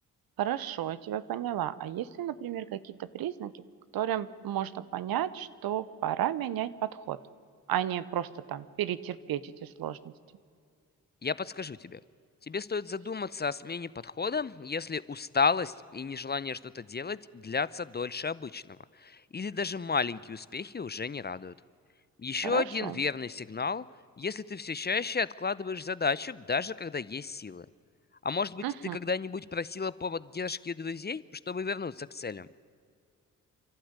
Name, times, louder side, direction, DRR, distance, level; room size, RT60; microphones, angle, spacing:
voice 1, 0.4-3.5 3.9-7.2 7.7-10.0 22.4-23.0 28.6-29.0, right 11 dB, 75° right, 16 dB, 0.9 m, -33 dB
voice 2, 11.2-12.0 12.5-21.5 22.2-23.8 24.2-27.7 28.2-28.6 28.9-32.5, left 5 dB, 30° left, 19 dB, 0.7 m, -33 dB
29.5 x 12.0 x 9.6 m, 2.3 s
supercardioid pair, 45°, 36 cm